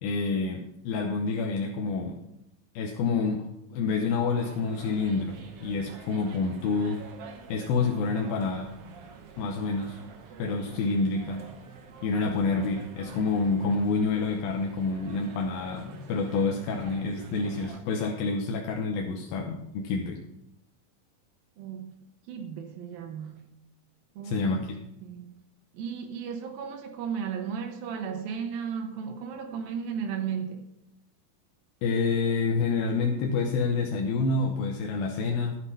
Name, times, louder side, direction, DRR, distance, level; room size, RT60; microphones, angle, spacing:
voice 1, 0.0-2.2 2.8-3.4 3.7-7.0 7.5-8.7 9.4-10.0 10.4-11.4 12.0-20.2 24.2-24.8 31.8-35.6, left 4 dB, 90° left, 1 dB, 2.7 m, -28 dB
sound 1, 4.4-17.8, right 6 dB, 65° right, 1.6 m, -47 dB
voice 2, 21.6-22.0 22.3-23.5 24.2-24.7 25.0-25.4 25.7-30.6, right 7 dB, 90° right, 4 dB, 2.9 m, -35 dB
11.5 x 7.9 x 5.6 m, 0.82 s
omnidirectional pair, 4.0 m